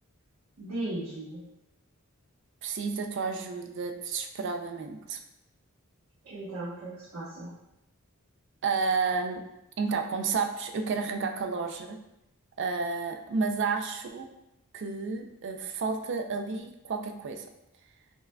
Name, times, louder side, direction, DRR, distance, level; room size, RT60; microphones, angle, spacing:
voice 1, 0.6-1.4 6.2-7.5, right 1 dB, 85° right, -11 dB, 1.0 m, -36 dB
voice 2, 2.6-5.2 8.6-9.4 9.8-12.0 12.6-14.3 14.7-17.5, right 4 dB, 55° right, 5 dB, 0.4 m, -31 dB
5.6 x 2.2 x 2.2 m, 0.87 s
head